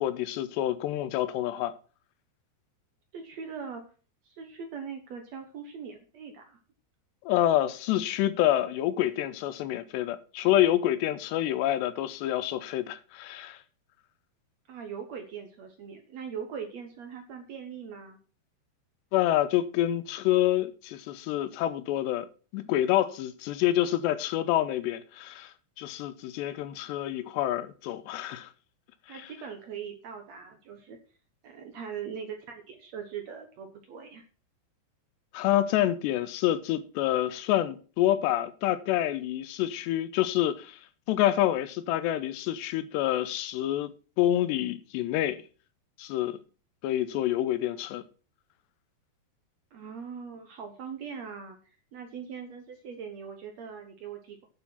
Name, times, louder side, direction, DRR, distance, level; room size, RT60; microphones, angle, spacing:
voice 1, 0.0-1.7 7.3-13.6 19.1-22.3 22.5-28.5 35.3-40.8 41.1-45.4 46.0-46.4 46.8-48.0, left 13 dB, 85° left, 2.9 m, -27 dB
voice 2, 3.1-3.9 4.2-6.6 14.7-18.2 29.1-31.0 31.4-34.2 49.7-51.6 51.9-54.5, right 7 dB, 75° right, 1.6 m, -41 dB
9.7 x 6.4 x 5.8 m
omnidirectional pair, 5.0 m